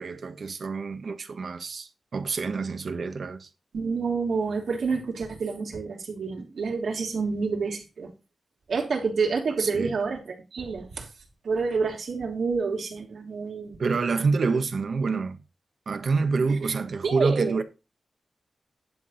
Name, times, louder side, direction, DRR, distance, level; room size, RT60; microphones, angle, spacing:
voice 1, 0.0-3.5 9.6-10.0 13.8-15.4 15.9-17.6, right 4 dB, 65° right, 1.2 m, -27 dB
voice 2, 3.7-8.1 8.7-11.1 11.4-13.8 17.0-17.6, right 4 dB, 85° right, 3.1 m, -28 dB
11.0 x 4.6 x 5.5 m
wide cardioid pair, 130°, 0 cm